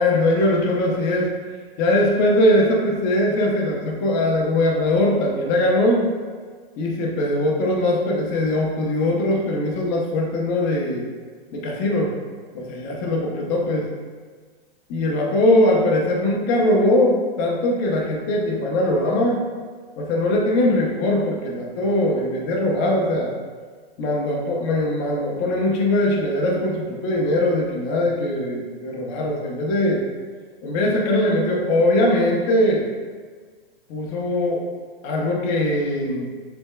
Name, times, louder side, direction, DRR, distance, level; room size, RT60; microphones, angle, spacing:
voice 1, 0.0-1.3 1.8-6.1 6.8-11.0 11.5-12.1 12.5-13.9 14.9-19.4 20.0-23.3 24.0-30.0 30.6-32.9 33.9-34.6 35.0-36.3, left 1 dB, 30° left, -1 dB, 0.7 m, -21 dB
6.2 x 3.5 x 2.2 m, 1.6 s
hypercardioid pair, 140°, 31 cm